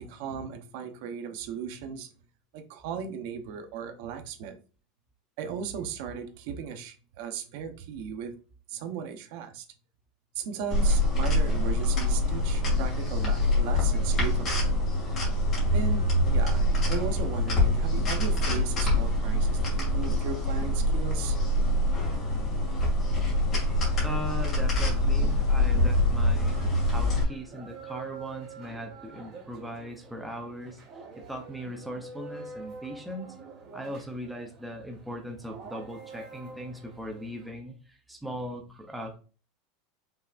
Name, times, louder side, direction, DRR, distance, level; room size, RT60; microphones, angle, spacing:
voice 1, 0.0-2.1 2.5-4.6 5.4-8.3 8.7-9.7 10.3-14.7 15.7-21.4, right 7 dB, 55° right, 0.8 m, -37 dB
sound 1, 10.7-27.2, left 1 dB, 25° left, 2.2 m, -25 dB
voice 2, 24.0-30.8 31.1-33.4 33.7-39.2, right 1 dB, 5° right, 0.6 m, -39 dB
sound 2, 26.4-37.5, right 4 dB, 30° right, 1.7 m, -46 dB
5.5 x 3.4 x 2.5 m
supercardioid pair, 170°, 0 cm